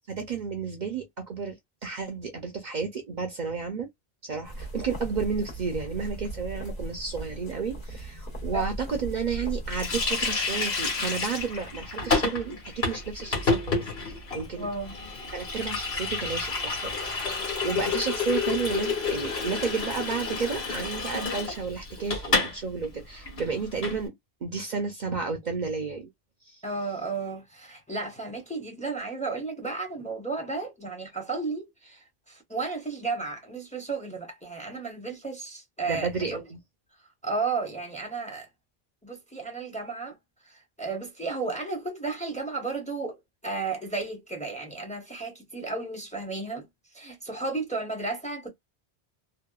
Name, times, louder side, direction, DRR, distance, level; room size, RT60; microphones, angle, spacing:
voice 1, 0.1-1.6 1.8-3.9 4.2-14.7 15.3-17.4 17.6-24.1 24.4-26.1 26.5-26.6 35.9-36.6, right 5 dB, 55° right, 0.6 m, -32 dB
sound 1, 4.4-10.5, right 1 dB, 60° left, 1.3 m, -37 dB
Water tap faucet, 9.7-22.6 22.8-23.0 23.2-24.0, left 4 dB, 90° left, 1.4 m, -29 dB
voice 2, 14.5-14.9 26.6-36.4 37.2-38.5 39.0-40.2 40.4-46.7 46.9-48.5, right 3 dB, 10° left, 0.7 m, -33 dB
2.7 x 2.2 x 2.2 m
omnidirectional pair, 1.0 m